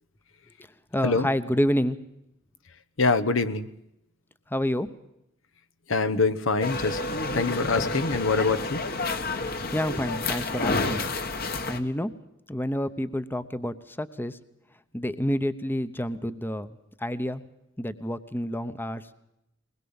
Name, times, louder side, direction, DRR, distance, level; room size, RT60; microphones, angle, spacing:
voice 1, 0.9-2.0 4.5-4.9 9.7-11.0 11.7-12.1 12.5-14.4 14.9-17.4 17.8-19.1, equal, 10° left, 13 dB, 0.9 m, -28 dB
voice 2, 3.0-3.7 5.9-7.0 7.3-8.8, left 3 dB, 70° left, 10 dB, 1.1 m, -24 dB
sound 1, 6.6-11.8, left 3 dB, 50° left, 1.7 m, -29 dB
21.5 x 21.0 x 7.2 m, 0.84 s
head